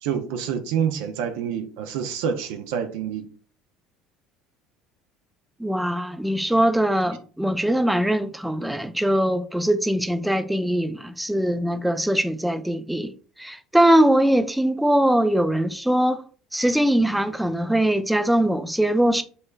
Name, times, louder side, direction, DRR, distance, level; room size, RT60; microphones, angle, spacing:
voice 1, 0.0-3.3, right 8 dB, 75° right, 0.5 m, -27 dB
voice 2, 5.6-13.1 13.4-16.2 16.5-19.2, right 1 dB, 5° right, 0.5 m, -21 dB
5.4 x 3.2 x 2.3 m
hypercardioid pair, 80°, 0 cm